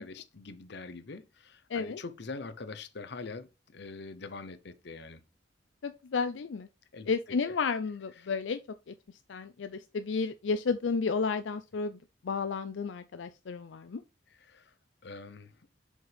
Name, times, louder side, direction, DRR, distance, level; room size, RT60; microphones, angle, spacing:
voice 1, 0.0-3.5 3.7-5.2 6.9-7.5 8.2-8.3 14.4-14.7 15.0-15.5, left 3 dB, 65° left, 0.8 m, -44 dB
voice 2, 1.7-2.0 5.8-6.7 7.1-8.6 8.9-9.0 9.3-12.0 12.2-14.0, left 5 dB, 90° left, 0.5 m, -32 dB
7.7 x 5.2 x 3.4 m
head